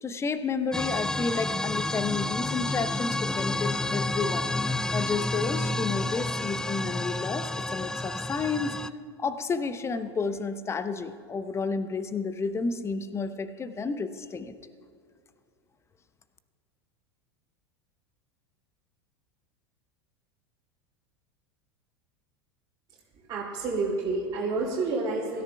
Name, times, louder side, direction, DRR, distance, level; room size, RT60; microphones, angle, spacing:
voice 1, 0.0-4.5 4.9-8.8 9.2-14.5, left 4 dB, 20° left, 11 dB, 0.8 m, -31 dB
sound 1, 0.7-8.9, left 2 dB, 5° left, 0.3 m, -30 dB
voice 2, 22.9-25.4, right 3 dB, 35° right, -6 dB, 2.8 m, -30 dB
23.0 x 13.5 x 2.3 m, 2.3 s
figure-of-eight pair, 80°, 14 cm